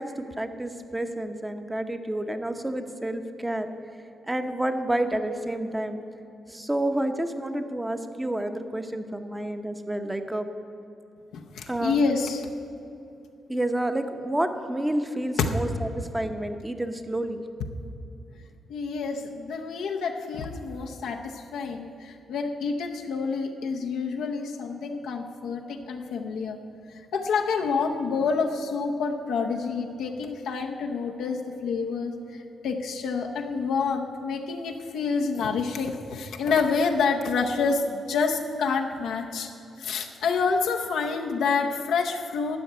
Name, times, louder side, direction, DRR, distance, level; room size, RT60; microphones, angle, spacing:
voice 1, 0.0-3.7 4.3-6.0 6.5-10.5 11.7-12.0 13.5-17.4, right 1 dB, 10° right, 7 dB, 0.9 m, -29 dB
voice 2, 11.3-12.4 18.7-26.6 27.1-39.5 39.8-42.6, left 5 dB, 85° left, 1 dB, 0.7 m, -28 dB
12.5 x 5.9 x 9.2 m, 2.7 s
cardioid pair, 80°, 0 cm